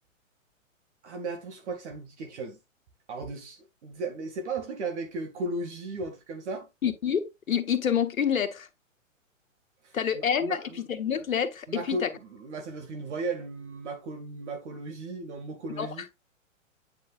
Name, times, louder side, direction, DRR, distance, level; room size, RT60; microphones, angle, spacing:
voice 1, 1.0-2.6 3.1-6.7 9.8-10.8 11.7-16.2, right 3 dB, 55° right, 2.1 m, -36 dB
voice 2, 6.8-8.7 9.9-12.1 15.8-15.9, left 8 dB, 80° left, 1.4 m, -27 dB
9.0 x 5.2 x 2.4 m
hypercardioid pair, 125°, 40 cm